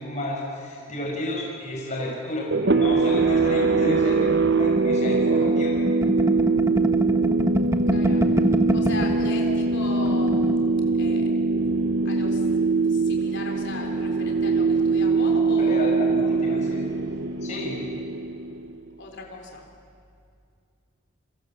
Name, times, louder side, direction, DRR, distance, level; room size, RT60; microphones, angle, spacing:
voice 1, 0.0-5.7 15.6-16.8 17.4-17.8, left 1 dB, 35° left, -3 dB, 5.6 m, -31 dB
sound 1, 2.5-18.8, right 3 dB, 55° right, 0.9 m, -22 dB
sound 2, 4.8-9.3 9.6-9.7 10.0-10.6, equal, 15° right, 1.2 m, -26 dB
voice 2, 7.9-8.3 8.7-10.6 10.9-11.3 12.0-12.5 12.9-15.9 17.0-17.2 17.4-17.6 19.0-19.7, left 2 dB, 55° left, 1 dB, 3.6 m, -37 dB
29.5 x 24.5 x 7.5 m, 2.4 s
head